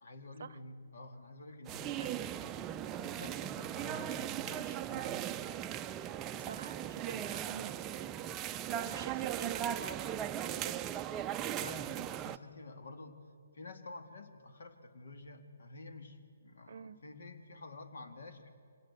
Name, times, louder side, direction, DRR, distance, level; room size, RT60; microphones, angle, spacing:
voice 1, 0.0-5.2 11.6-13.2 13.5-18.5, left 2 dB, 70° left, 8 dB, 2.2 m, -50 dB
sound 1, 1.7-12.4, right 11 dB, 15° right, 0.5 m, -38 dB
voice 2, 6.4-8.3 8.7-10.8 16.7-17.0, right 7 dB, 55° right, 18 dB, 0.7 m, -47 dB
25.0 x 18.0 x 8.2 m, 2.4 s
hypercardioid pair, 155°, 0 cm